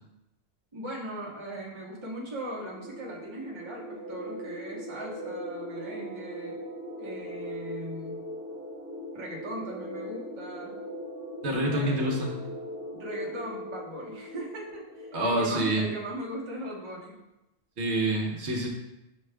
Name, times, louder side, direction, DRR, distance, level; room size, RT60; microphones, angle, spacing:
voice 1, 0.7-6.5 7.0-8.2 9.1-10.8 11.7-12.1 12.9-17.1, right 1 dB, 25° right, -4 dB, 0.8 m, -39 dB
sound 1, 2.4-16.7, equal, 35° left, 1.4 m, -40 dB
voice 2, 11.4-12.3 15.1-15.8 17.8-18.7, right 1 dB, 60° right, -1 dB, 1.0 m, -27 dB
6.1 x 2.3 x 3.3 m, 0.94 s
omnidirectional pair, 1.4 m